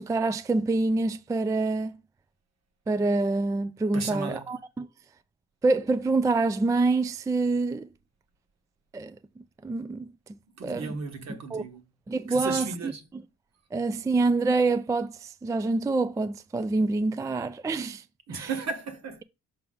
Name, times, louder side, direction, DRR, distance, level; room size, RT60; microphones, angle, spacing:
voice 1, 0.0-2.0 2.9-4.9 5.6-7.9 8.9-10.1 10.6-10.9 11.3-11.6 12.1-12.9 13.7-18.0 18.3-18.5, right 3 dB, 10° right, 0.3 m, -26 dB
voice 2, 3.9-4.5 10.6-11.8 12.3-13.0 18.3-19.2, right 4 dB, 60° right, 1.4 m, -34 dB
5.8 x 4.8 x 3.8 m
cardioid pair, 90°, 30 cm